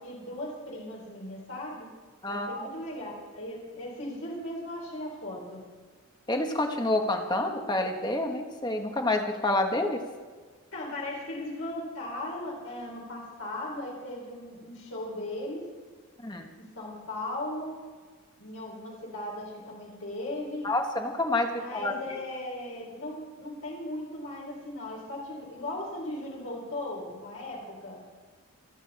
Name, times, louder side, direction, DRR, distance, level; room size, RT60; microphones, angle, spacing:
voice 1, 0.0-1.9 2.3-5.6 10.7-15.6 16.6-17.8 18.4-20.7 21.6-28.0, left 1 dB, 70° left, -4 dB, 4.5 m, -37 dB
voice 2, 2.2-2.7 6.3-10.0 16.2-16.5 20.6-22.2, left 2 dB, 20° left, 3 dB, 1.4 m, -28 dB
28.5 x 9.7 x 4.3 m, 1.5 s
head